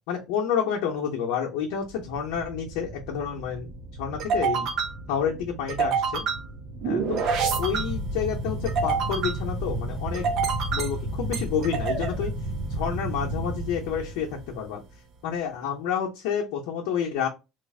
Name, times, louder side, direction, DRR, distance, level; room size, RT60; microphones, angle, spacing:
voice 1, 0.1-3.7 4.0-4.7 5.1-6.2 6.8-7.2 7.6-10.3 10.7-12.3 12.7-14.3 14.5-14.8 15.2-17.3, left 7 dB, 80° left, -1 dB, 0.7 m, -29 dB
sound 1, 1.9-14.6, right 4 dB, 60° right, 0.7 m, -29 dB
3.2 x 2.4 x 3.2 m, 0.26 s
supercardioid pair, 115°, 0 cm